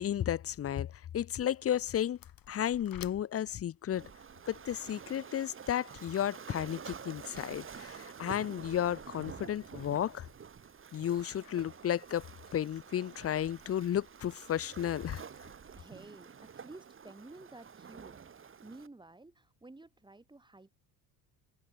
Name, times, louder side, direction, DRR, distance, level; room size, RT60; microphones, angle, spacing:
voice 1, 0.0-2.2 2.5-4.1 4.5-10.3 10.9-12.3 12.5-15.2, left 10 dB, 30° left, 0.7 m, -33 dB
sound 1, 1.3-12.9, left 11 dB, 45° left, 3.5 m, -59 dB
Waves surf, 3.9-18.9, right 6 dB, 25° right, 1.9 m, -49 dB
voice 2, 15.7-20.7, right 2 dB, 10° right, 2.9 m, -53 dB
cardioid pair, 105°, 47 cm